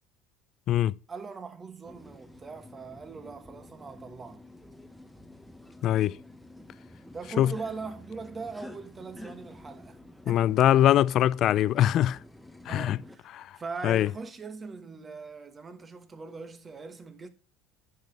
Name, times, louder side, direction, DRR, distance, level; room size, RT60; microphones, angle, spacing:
voice 1, 1.1-4.4 7.1-10.0 10.2-10.6 12.7-17.3, right 4 dB, 25° right, 1.4 m, -41 dB
sound 1, 1.8-13.2, left 1 dB, ahead, 1.1 m, -49 dB
voice 2, 5.8-6.2 7.4-7.5 10.3-12.2 12.7-13.0 13.4-13.5 13.8-14.1, left 12 dB, 50° left, 0.4 m, -22 dB
10.5 x 6.2 x 3.3 m
supercardioid pair, 110°, 0 cm